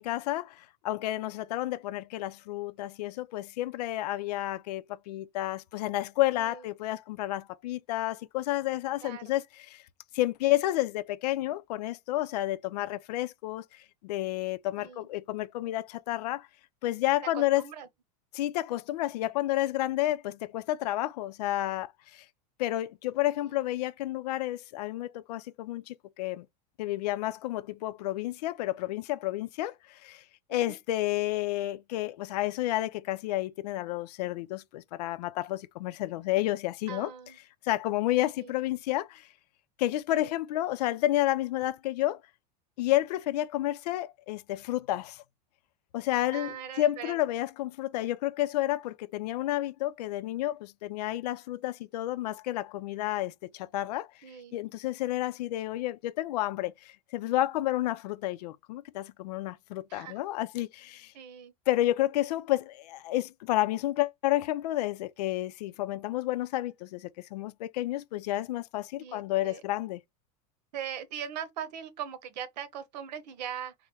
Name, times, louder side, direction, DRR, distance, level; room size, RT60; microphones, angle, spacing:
voice 1, 0.0-9.8 10.1-13.6 14.0-16.5 16.8-17.6 18.3-22.2 22.6-26.4 26.8-30.2 30.5-37.1 37.6-39.3 39.8-42.2 42.8-45.2 45.9-54.1 54.5-61.1 61.7-70.0, left 15 dB, 75° left, 0.5 m, -30 dB
voice 2, 14.8-15.1 17.3-17.9 23.4-23.5 30.5-30.8 36.9-37.4 38.4-38.6 40.1-40.4 46.3-47.2 54.2-54.6 59.9-60.2 61.1-61.5 69.0-69.6 70.7-73.7, right 9 dB, 85° right, 1.0 m, -40 dB
4.2 x 2.1 x 3.4 m
supercardioid pair, 175°, 21 cm